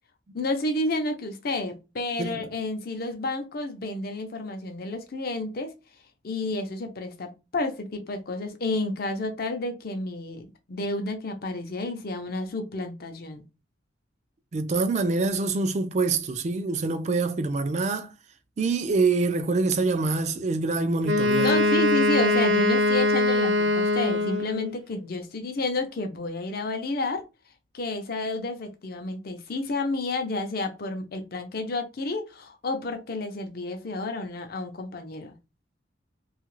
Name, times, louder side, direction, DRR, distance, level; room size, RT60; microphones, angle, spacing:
voice 1, 0.3-5.7 6.2-13.4 21.4-27.2 27.7-35.4, left 2 dB, 50° left, 0.6 m, -30 dB
voice 2, 2.2-2.5 14.5-18.1 18.6-21.6, right 3 dB, 35° right, 0.3 m, -25 dB
Wind instrument woodwind instrument, 21.0-24.7, left 2 dB, 70° right, 0.7 m, -22 dB
2.7 x 2.4 x 3.1 m
head